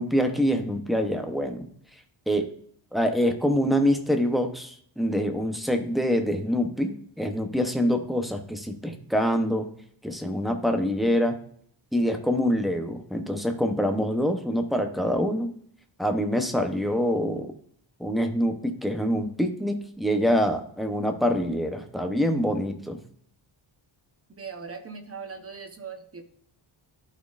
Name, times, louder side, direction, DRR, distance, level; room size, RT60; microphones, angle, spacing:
voice 1, 0.0-1.7 2.3-2.5 2.9-9.7 10.0-11.4 11.9-15.5 16.0-17.5 18.0-23.0, equal, ahead, 5 dB, 0.6 m, -25 dB
voice 2, 24.4-26.2, right 5 dB, 30° right, 6 dB, 0.8 m, -39 dB
11.5 x 4.3 x 2.4 m, 0.63 s
wide cardioid pair, 170°, 47 cm